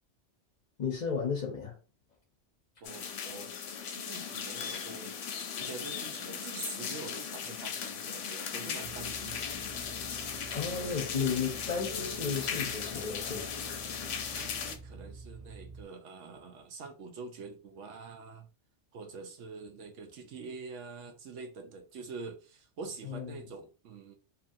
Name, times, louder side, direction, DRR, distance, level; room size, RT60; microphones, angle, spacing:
voice 1, 0.8-1.7 10.5-13.5 23.1-23.4, left 6 dB, 45° left, 0.6 m, -33 dB
sound 1, 2.8-14.8, left 7 dB, 85° left, 0.9 m, -37 dB
voice 2, 2.8-3.5 3.9-5.1 5.5-9.4 14.3-18.5 18.9-24.1, right 4 dB, 90° right, 1.0 m, -45 dB
sound 2, 8.8-15.8, right 4 dB, 35° right, 0.3 m, -49 dB
2.8 x 2.6 x 2.6 m
omnidirectional pair, 1.2 m